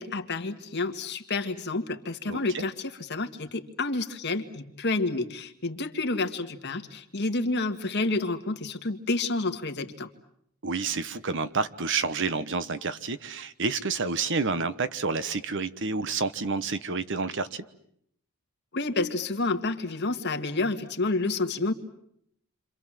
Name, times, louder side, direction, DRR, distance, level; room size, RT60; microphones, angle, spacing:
voice 1, 0.0-10.1 18.7-21.7, left 3 dB, 50° left, 6 dB, 2.0 m, -29 dB
voice 2, 2.3-2.7 10.6-17.6, right 4 dB, 55° right, 13 dB, 1.2 m, -29 dB
28.5 x 26.5 x 7.6 m, 0.72 s
head